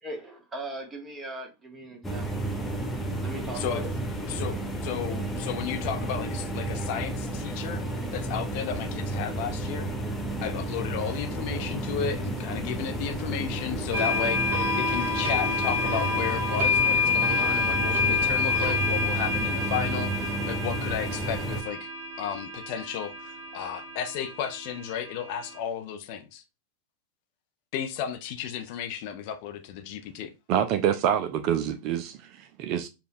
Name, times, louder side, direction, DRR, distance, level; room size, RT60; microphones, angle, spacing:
voice 1, 0.0-2.4 3.2-3.9, right 1 dB, 15° right, 1.2 m, -39 dB
sound 1, 2.0-21.6, right 2 dB, 10° left, 0.7 m, -32 dB
voice 2, 4.8-7.8 8.1-9.9 10.4-21.9 22.2-26.4 27.7-30.3, left 8 dB, 45° left, 0.5 m, -33 dB
sound 2, 13.9-25.5, left 4 dB, 60° right, 1.1 m, -28 dB
voice 3, 30.5-32.9, right 9 dB, 40° right, 0.3 m, -26 dB
5.1 x 2.2 x 2.6 m
figure-of-eight pair, 90°, 0 cm